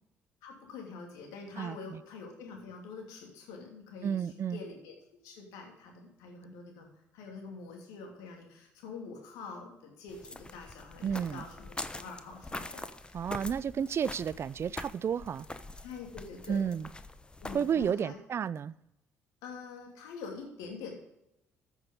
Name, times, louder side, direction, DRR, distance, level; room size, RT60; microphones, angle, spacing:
voice 1, 0.4-5.0 5.2-6.9 7.1-13.3 15.8-16.6 17.4-18.2 19.4-20.9, left 4 dB, 75° left, 1 dB, 2.9 m, -46 dB
voice 2, 1.6-2.0 4.0-4.6 11.0-11.4 13.1-15.5 16.5-16.9 17.5-18.7, right 7 dB, 45° right, 21 dB, 0.4 m, -32 dB
sound 1, 10.1-17.9, left 2 dB, 15° left, 0.9 m, -44 dB
14.0 x 6.4 x 5.3 m, 0.87 s
hypercardioid pair, 55°, 6 cm